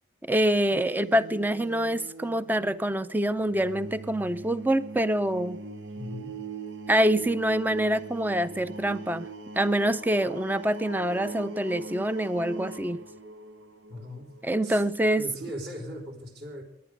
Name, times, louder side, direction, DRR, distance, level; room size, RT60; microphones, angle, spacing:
voice 1, 0.2-5.6 6.9-9.3 9.6-13.0 14.4-15.3, right 1 dB, 10° right, 14 dB, 0.5 m, -25 dB
sound 1, 0.7-16.1, right 3 dB, 80° right, 1.2 m, -42 dB
voice 2, 6.0-6.3 13.9-14.3 14.6-14.8 15.1-16.6, equal, 55° right, 2 dB, 4.0 m, -38 dB
20.0 x 11.0 x 5.0 m, 0.81 s
head